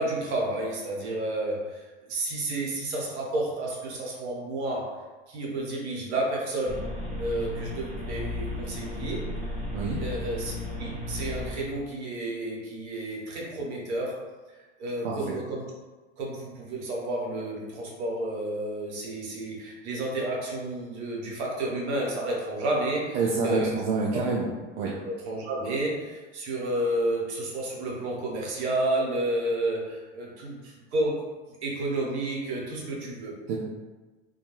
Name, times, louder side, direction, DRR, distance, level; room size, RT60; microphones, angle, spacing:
voice 1, 0.0-1.8 2.1-6.9 7.2-9.5 10.0-14.2 14.5-15.6 16.2-23.7 24.1-24.2 25.0-31.3 31.6-33.3, right 1 dB, 75° right, -2 dB, 0.9 m, -31 dB
sound 1, 6.7-11.8, left 1 dB, 25° right, 0.8 m, -34 dB
voice 2, 23.1-24.5 24.8-24.9 33.5-33.6, right 4 dB, 60° right, -4 dB, 0.5 m, -27 dB
2.3 x 2.2 x 2.9 m, 1.2 s
hypercardioid pair, 110°, 34 cm